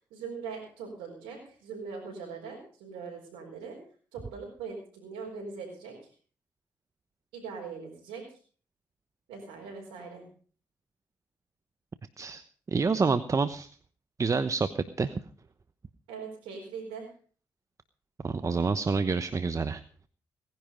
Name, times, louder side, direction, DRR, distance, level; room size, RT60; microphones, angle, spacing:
voice 1, 0.0-3.8 4.1-6.1 7.3-8.4 9.3-10.2 16.1-17.1, right 5 dB, 90° right, -4 dB, 4.6 m, -41 dB
voice 2, 12.2-13.7 14.2-15.1 18.2-19.8, right 4 dB, 40° right, 12 dB, 1.0 m, -28 dB
18.5 x 10.5 x 5.2 m, 0.43 s
supercardioid pair, 50°, 9 cm